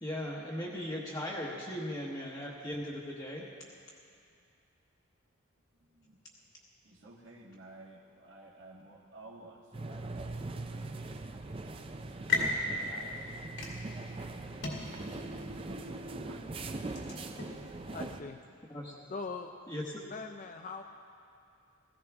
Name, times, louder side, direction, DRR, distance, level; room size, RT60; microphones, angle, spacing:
voice 1, 0.0-3.5 18.7-18.9 19.7-20.0, left 1 dB, 20° left, -4 dB, 1.0 m, -38 dB
voice 2, 5.7-6.2 6.8-11.1 12.0-14.6, right 2 dB, 65° right, -1 dB, 1.5 m, -53 dB
sound 1, 9.7-18.2, right 2 dB, 25° right, 0.5 m, -41 dB
sound 2, 11.7-16.4, right 1 dB, 90° right, 0.9 m, -50 dB
sound 3, 11.9-17.6, left 3 dB, 70° left, 2.4 m, -38 dB
voice 3, 17.9-18.4 19.1-19.5 20.1-20.8, left 4 dB, 40° left, 6 dB, 0.4 m, -41 dB
16.5 x 15.0 x 3.5 m, 2.4 s
head